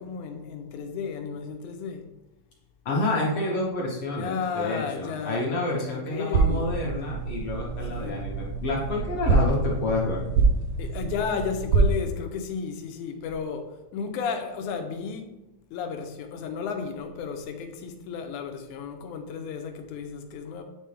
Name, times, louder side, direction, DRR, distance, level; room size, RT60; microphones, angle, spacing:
voice 1, 0.0-2.1 4.1-5.5 6.1-6.7 7.9-8.2 10.8-15.3 15.7-20.6, left 6 dB, 85° left, 5 dB, 2.1 m, -33 dB
voice 2, 2.8-10.2, left 2 dB, 60° left, -4 dB, 1.6 m, -29 dB
sound 1, 6.3-11.9, right 4 dB, 85° right, 1.3 m, -25 dB
9.5 x 3.3 x 3.3 m, 0.97 s
omnidirectional pair, 3.5 m